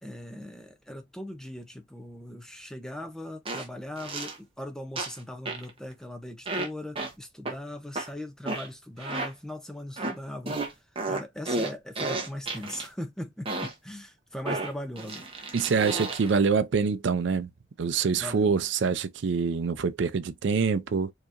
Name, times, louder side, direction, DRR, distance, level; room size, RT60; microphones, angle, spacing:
voice 1, 0.0-10.6 11.0-15.3 18.2-18.6, left 1 dB, 5° left, 0.5 m, -39 dB
sound 1, 3.5-3.7 4.0-4.4 5.0-5.2 5.5-5.7 6.5-6.7 7.0-7.1 7.5-7.6 8.0-8.1 8.5-8.7 9.0-9.3 10.0-10.2 10.5-12.9 13.5-13.7 14.5-16.3, right 2 dB, 30° right, 0.9 m, -32 dB
voice 2, 15.5-17.5 17.8-21.1, right 5 dB, 70° right, 0.4 m, -25 dB
4.7 x 2.8 x 2.5 m
head